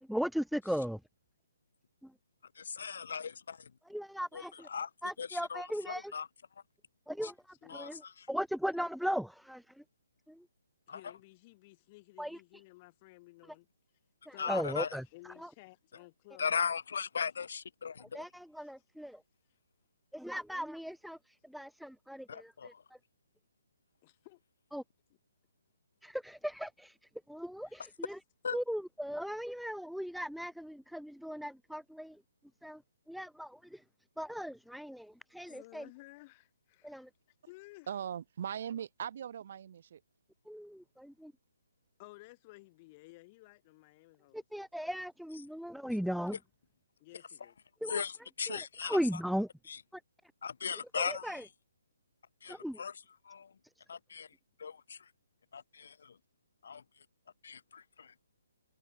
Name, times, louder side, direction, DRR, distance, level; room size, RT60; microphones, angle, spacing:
voice 1, 0.1-1.0 3.9-4.7 5.0-6.1 7.1-7.3 7.7-8.0 8.3-9.6 12.2-12.4 14.5-15.0 18.1-19.2 20.1-21.2 21.5-22.7 24.7-24.8 26.0-26.9 27.3-28.2 28.5-32.2 32.6-32.8 33.1-33.8 34.2-35.8 36.8-37.1 40.5-41.3 44.3-46.4 47.8-48.0 48.5-49.5 51.0-51.4 52.5-52.8, equal, ahead, 0.3 m, -37 dB
voice 2, 2.6-3.7 4.3-4.9 5.2-6.3 7.2-7.3 7.7-8.3 10.9-11.0 14.4-15.0 16.4-18.2 22.3-22.8 28.4-28.6 47.9-49.2 49.7-49.8 50.4-51.5 52.4-53.5 53.9-54.3 54.6-55.1 55.5-56.1 56.6-56.8 57.4-58.1, left 6 dB, 65° left, 0.9 m, -38 dB
voice 3, 7.5-8.3 10.9-13.7 14.3-14.9 15.1-16.7 18.6-18.7 24.0-24.4 27.6-28.0 35.5-37.1 37.4-38.0 42.0-44.4 47.0-47.6, left 23 dB, 30° left, 7.6 m, -56 dB
voice 4, 37.9-40.0, right 9 dB, 50° right, 3.6 m, -39 dB
hypercardioid pair, 150°, 0 cm